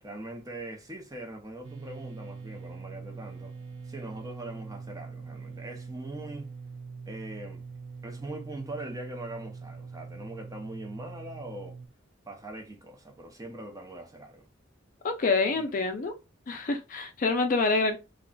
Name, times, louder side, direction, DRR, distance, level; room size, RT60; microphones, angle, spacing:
voice 1, 0.0-3.5 3.9-6.5 7.1-7.7 8.0-11.8 12.3-14.5 15.5-15.7, right 1 dB, 20° right, 0.6 m, -41 dB
sound 1, 1.6-11.9, right 5 dB, 75° right, 0.6 m, -43 dB
voice 2, 15.0-16.1 16.5-18.0, left 3 dB, 40° left, 0.4 m, -26 dB
2.4 x 2.2 x 3.7 m
head